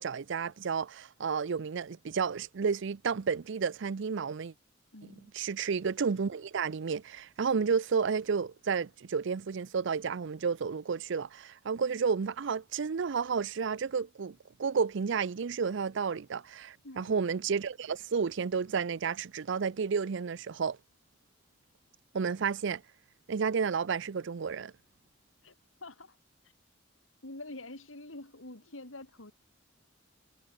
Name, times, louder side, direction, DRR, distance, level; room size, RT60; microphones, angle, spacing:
voice 1, 0.0-4.5 5.3-20.8 22.1-22.8 23.3-24.7, right 5 dB, 65° right, 0.5 m, -31 dB
voice 2, 4.9-5.3 16.8-17.2 25.4-25.5 25.8-26.2 27.2-29.3, left 2 dB, 80° left, 3.7 m, -46 dB
head